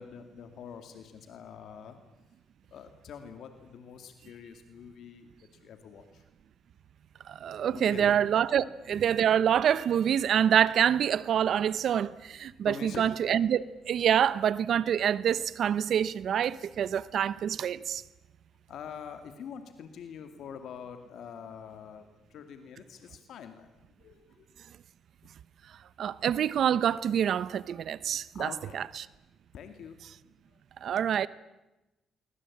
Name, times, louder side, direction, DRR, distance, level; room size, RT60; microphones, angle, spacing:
voice 1, 0.0-2.0 2.7-5.3 5.6-6.2 7.7-8.1 8.5-8.7 12.6-13.1 18.7-23.7 24.0-24.5 28.3-28.8 29.5-30.0, left 7 dB, 70° left, 2.3 m, -45 dB
voice 2, 7.3-18.0 26.0-28.5 28.7-28.8 30.8-31.3, right 9 dB, 65° right, 0.9 m, -26 dB
24.0 x 22.5 x 8.6 m
cardioid pair, 90°, 0 cm